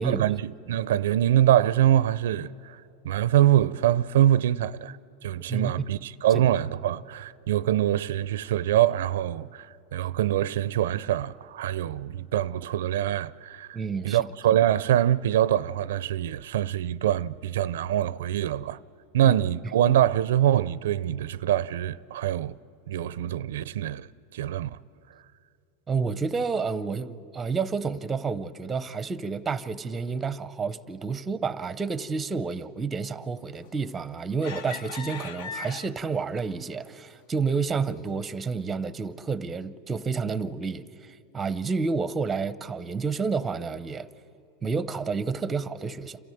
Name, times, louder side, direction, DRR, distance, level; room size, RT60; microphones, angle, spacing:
voice 1, 0.0-5.0 5.2-13.8 14.0-18.8 19.1-22.6 22.9-24.8, right 12 dB, 80° right, 0.4 m, -24 dB
voice 2, 13.7-14.3 19.2-19.3 25.9-44.1 44.6-46.2, right 5 dB, 15° right, 0.7 m, -30 dB
sound 1, 33.6-34.0 34.4-36.2 36.8-36.9 37.4-37.6, left 5 dB, 65° left, 1.1 m, -38 dB
28.5 x 13.5 x 9.3 m
supercardioid pair, 130°, 0 cm